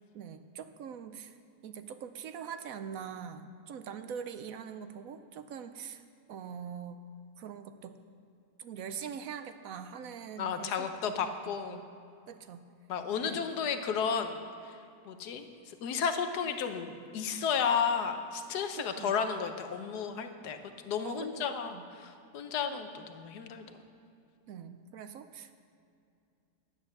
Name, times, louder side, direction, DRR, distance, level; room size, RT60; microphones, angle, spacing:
voice 1, 0.1-1.4 1.6-6.0 6.3-7.1 7.4-8.0 8.6-10.9 11.5-11.8 12.3-12.7 13.2-13.4 18.8-19.1 21.0-21.8 24.5-25.6, right 7 dB, 70° right, 10 dB, 0.9 m, -43 dB
voice 2, 10.4-11.8 12.9-14.8 15.0-20.6 20.8-23.8, left 6 dB, 80° left, 8 dB, 1.4 m, -33 dB
10.5 x 9.1 x 6.5 m, 2.5 s
omnidirectional pair, 1.7 m